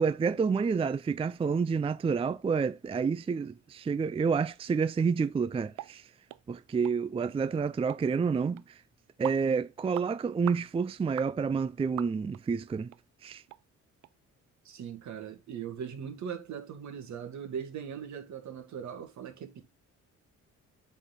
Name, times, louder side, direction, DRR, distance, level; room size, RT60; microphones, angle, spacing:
voice 1, 0.0-6.0 6.5-8.8 9.2-12.9 13.2-13.4, right 5 dB, 20° right, 0.4 m, -29 dB
sound 1, 5.8-5.9 6.3-6.4 6.8-7.0 7.2-7.3 7.9-8.0 8.6-8.7 9.2-9.4 9.9-10.1 10.5-10.6 11.2-11.3 12.0-12.4 12.9-13.0 13.5-13.6 14.0-14.1, right 16 dB, 85° right, 0.5 m, -41 dB
voice 2, 14.6-19.6, right 8 dB, 70° right, 2.0 m, -40 dB
8.4 x 4.0 x 4.1 m
cardioid pair, 90°, 30 cm